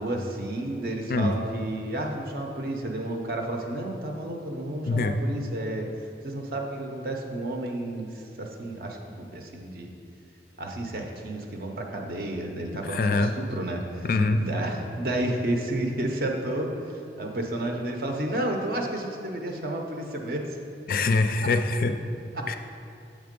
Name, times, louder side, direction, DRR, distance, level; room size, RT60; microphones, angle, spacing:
voice 1, 0.0-5.9 6.2-9.9 10.6-14.1 14.4-20.4 21.4-21.5 22.3-22.5, right 1 dB, 55° right, 2 dB, 0.6 m, -31 dB
voice 2, 4.9-5.2 12.8-13.3 14.0-14.4 20.9-21.9 22.5-22.6, left 3 dB, 50° left, 8 dB, 0.3 m, -24 dB
7.3 x 3.4 x 5.1 m, 2.5 s
head